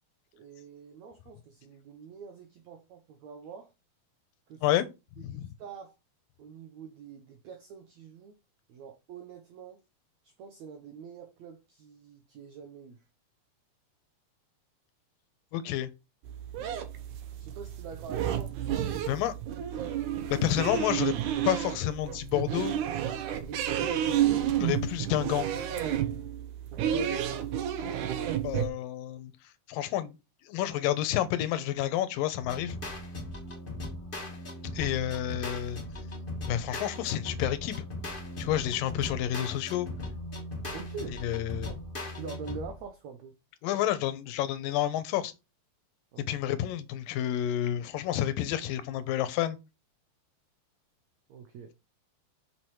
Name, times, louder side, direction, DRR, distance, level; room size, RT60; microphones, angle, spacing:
voice 1, 0.3-3.7 4.5-4.6 5.3-5.9 6.4-8.4 8.7-9.8 10.2-13.0 17.4-19.2 23.4-24.6 26.7-27.5 40.7-41.2 41.6-41.8 42.1-43.3 46.1-46.3 51.3-51.7, right 6 dB, 85° right, 1.6 m, -44 dB
voice 2, 5.2-5.5 15.5-15.9 19.1-19.3 20.3-21.1 21.5-22.8 24.6-25.5 28.4-29.3 29.7-30.1 30.5-32.8 34.7-35.8 36.5-37.8 38.4-39.9 41.2-41.7 43.6-45.3 46.3-49.6, left 12 dB, 75° left, 2.4 m, -29 dB
sound 1, 16.3-28.7, right 10 dB, 70° right, 2.0 m, -31 dB
sound 2, 32.4-42.9, left 1 dB, 40° left, 0.7 m, -38 dB
6.1 x 6.1 x 4.7 m
omnidirectional pair, 4.3 m